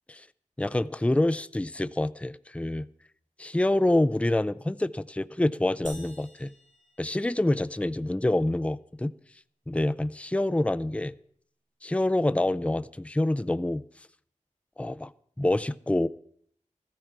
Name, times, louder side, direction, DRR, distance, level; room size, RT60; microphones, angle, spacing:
voice 1, 0.6-2.9 3.4-6.5 7.0-9.1 9.7-11.1 11.8-13.8 14.8-15.1 15.4-16.1, left 1 dB, 10° left, 0.5 m, -26 dB
sound 1, 5.9-7.8, right 1 dB, 75° right, 5.8 m, -49 dB
14.5 x 13.5 x 4.6 m
wide cardioid pair, 50°, 13 cm